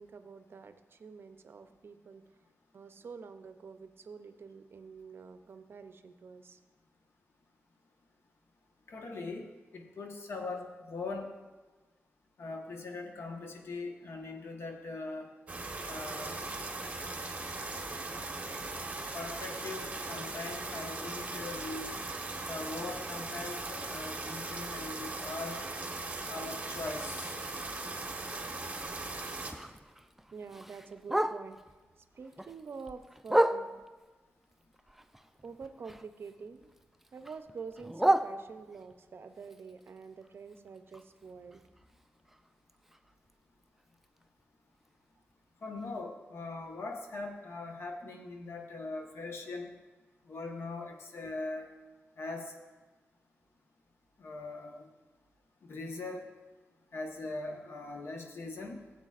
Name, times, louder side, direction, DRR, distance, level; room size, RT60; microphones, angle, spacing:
voice 1, 0.0-2.2 2.7-6.6 30.3-31.6 32.1-33.7 35.4-36.7 37.1-41.6 51.2-51.3, right 5 dB, 60° right, 9 dB, 0.6 m, -47 dB
voice 2, 8.9-9.5 9.7-11.3 12.4-15.3 15.9-16.4 19.1-21.9 22.5-25.6 26.3-27.3 45.6-49.7 50.3-51.7 52.2-52.5 54.2-54.9 55.7-56.3 56.9-58.8, left 3 dB, 70° left, 2 dB, 1.2 m, -41 dB
sound 1, 15.5-29.5, right 2 dB, 30° right, 1.3 m, -39 dB
Bark, 28.6-31.8 32.2-34.1 34.5-36.4 36.6-38.9 39.4-43.3 43.6-43.7 44.0-44.4 44.9-45.0 45.3-45.4 45.9-46.0, right 1 dB, 5° right, 0.3 m, -34 dB
14.0 x 7.9 x 2.5 m, 1.3 s
cardioid pair, 85°, 5 cm